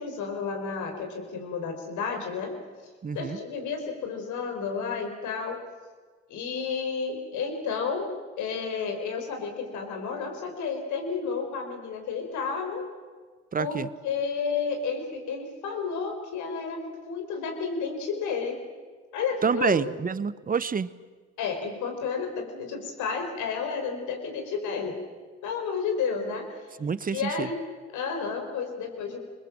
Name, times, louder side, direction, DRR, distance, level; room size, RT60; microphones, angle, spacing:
voice 1, 0.0-2.5 3.1-5.6 6.3-8.1 8.4-12.8 13.6-18.6 19.1-19.9 21.4-25.0 25.4-26.5 27.1-27.6 27.9-29.2, left 5 dB, 75° left, 4 dB, 4.8 m, -31 dB
voice 2, 3.0-3.4 13.5-13.9 19.4-20.9 26.8-27.5, right 6 dB, 30° right, 18 dB, 0.9 m, -27 dB
22.5 x 21.5 x 7.5 m, 1.5 s
supercardioid pair, 70°, 30 cm